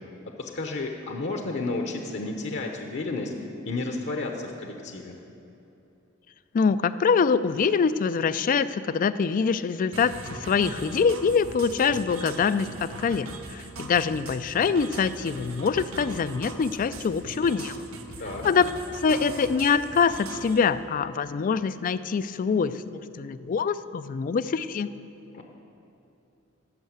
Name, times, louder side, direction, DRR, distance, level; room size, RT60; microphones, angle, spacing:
voice 1, 0.4-3.3 3.7-5.2 18.2-18.4 25.3-25.4, left 3 dB, 60° left, 2 dB, 0.8 m, -32 dB
voice 2, 6.5-17.8 18.4-24.9, left 5 dB, 40° left, 14 dB, 0.3 m, -24 dB
sound 1, 9.9-20.6, right 3 dB, 90° right, 0.9 m, -41 dB
12.0 x 6.4 x 7.9 m, 2.8 s
head